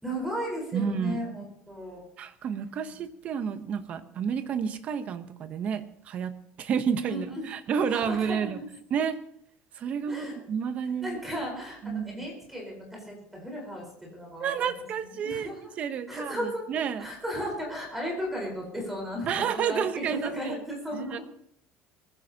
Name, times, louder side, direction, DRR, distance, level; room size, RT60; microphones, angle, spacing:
voice 1, 0.0-2.0 7.1-7.5 7.9-8.7 10.1-10.4 11.0-13.9 14.1-14.7 15.2-15.6 16.1-16.6 17.0-21.2, equal, 5° right, -1 dB, 4.4 m, -35 dB
voice 2, 0.7-1.2 2.2-8.6 8.9-9.2 9.8-11.2 11.8-12.3 14.4-17.1 19.3-20.6 20.9-21.2, right 7 dB, 35° right, 10 dB, 0.9 m, -30 dB
22.0 x 15.0 x 2.9 m, 0.71 s
cardioid pair, 175°, 4 cm